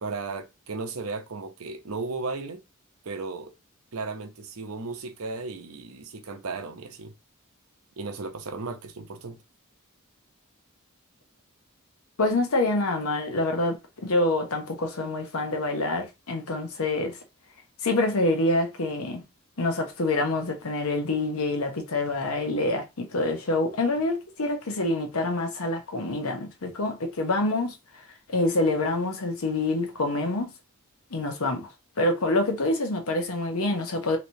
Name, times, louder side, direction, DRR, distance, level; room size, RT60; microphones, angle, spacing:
voice 1, 0.0-2.6 3.0-3.5 3.9-7.1 8.0-9.4, right 3 dB, 75° right, 0.7 m, -35 dB
voice 2, 12.2-17.2 17.8-19.2 19.6-27.8 28.3-30.5 31.1-31.7 32.0-34.2, left 2 dB, 80° left, 0.9 m, -26 dB
3.2 x 2.9 x 2.7 m
head